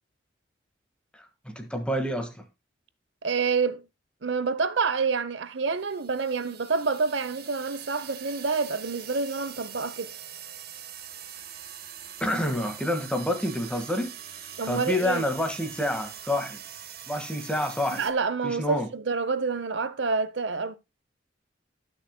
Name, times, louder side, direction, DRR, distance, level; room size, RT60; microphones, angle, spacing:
voice 1, 1.1-2.4 12.2-14.1 14.7-16.6 17.1-18.0 18.4-18.9, left 1 dB, 5° left, 1.7 m, -28 dB
voice 2, 3.2-3.8 4.2-10.1 14.6-15.2 17.9-20.8, right 4 dB, 75° right, 0.8 m, -28 dB
sound 1, 5.7-18.1, right 9 dB, 60° right, 1.3 m, -43 dB
19.0 x 6.5 x 2.2 m
head